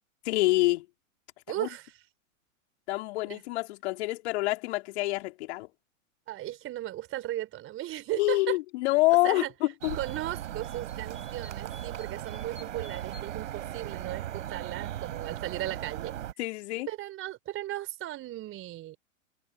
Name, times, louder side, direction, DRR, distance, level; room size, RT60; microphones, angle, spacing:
voice 1, 0.3-0.9 1.6-1.7 2.9-5.7 8.2-10.0 16.4-16.9, left 20 dB, 50° left, 4.0 m, -27 dB
voice 2, 1.5-1.9 3.3-3.4 6.3-8.6 9.2-9.5 9.9-16.1 16.9-19.0, right 14 dB, 30° right, 5.3 m, -36 dB
sound 1, 9.8-16.3, right 11 dB, 65° right, 4.1 m, -37 dB
hypercardioid pair, 110°, 41 cm